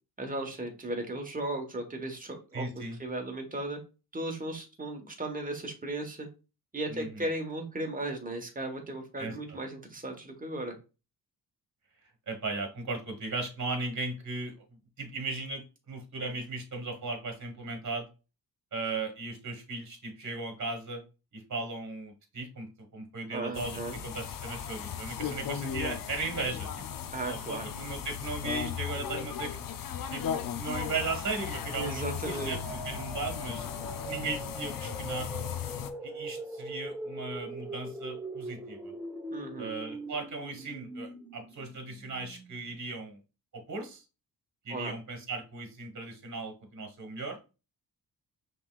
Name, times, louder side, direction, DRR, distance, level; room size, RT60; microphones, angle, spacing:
voice 1, 0.2-3.8 4.1-6.3 6.7-10.8 23.3-24.0 27.1-27.7 31.7-32.6 39.3-39.7 44.7-44.9, right 2 dB, 20° right, 3 dB, 1.3 m, -36 dB
voice 2, 2.5-3.0 6.9-7.3 9.2-9.6 12.3-14.5 15.0-18.1 18.7-21.0 21.3-26.7 27.2-29.6 30.1-30.3 30.5-32.6 32.8-33.7 34.1-35.3 36.0-38.9 39.6-43.2 43.7-44.0 44.6-47.4, right 3 dB, 50° right, 4 dB, 1.4 m, -37 dB
sound 1, 23.5-35.9, left 8 dB, 60° left, 0.6 m, -37 dB
sound 2, 31.2-42.8, right 1 dB, 5° right, 1.0 m, -42 dB
5.5 x 3.3 x 2.4 m, 0.30 s
cardioid pair, 95°, 38 cm